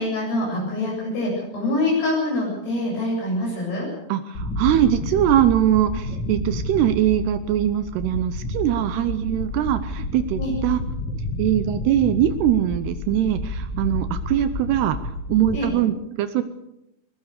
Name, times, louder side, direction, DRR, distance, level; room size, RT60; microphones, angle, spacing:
voice 1, 0.0-3.9 10.4-10.5 15.5-15.7, left 1 dB, 70° left, -2 dB, 10.0 m, -25 dB
voice 2, 4.1-10.8 11.4-15.0 15.3-16.4, right 11 dB, 80° right, 11 dB, 2.9 m, -22 dB
sound 1, 4.3-15.6, left 1 dB, 30° left, 2.7 m, -30 dB
22.0 x 20.5 x 6.7 m, 0.82 s
omnidirectional pair, 4.9 m